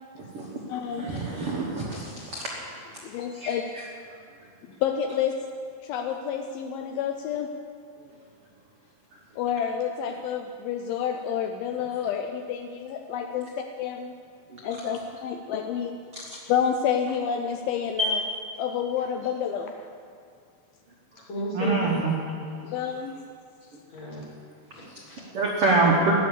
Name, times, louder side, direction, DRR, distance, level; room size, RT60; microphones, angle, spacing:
voice 1, 0.1-0.6 0.9-2.5 3.3-3.8 14.5-14.6 16.1-16.2 18.0-18.1 21.5-22.1 25.3-26.1, right 3 dB, 65° right, -3 dB, 1.5 m, -26 dB
voice 2, 0.7-1.2 3.0-3.6 4.8-5.3 5.8-7.5 9.4-13.5 13.8-14.2 14.6-15.9 16.3-18.2 18.6-19.7 22.6-23.2, left 8 dB, 80° left, 4 dB, 2.3 m, -29 dB
voice 3, 21.1-22.0 22.7-23.1 23.9-24.3 24.7-25.3, equal, 45° left, -3 dB, 3.4 m, -34 dB
14.0 x 10.0 x 7.3 m, 2.3 s
omnidirectional pair, 4.6 m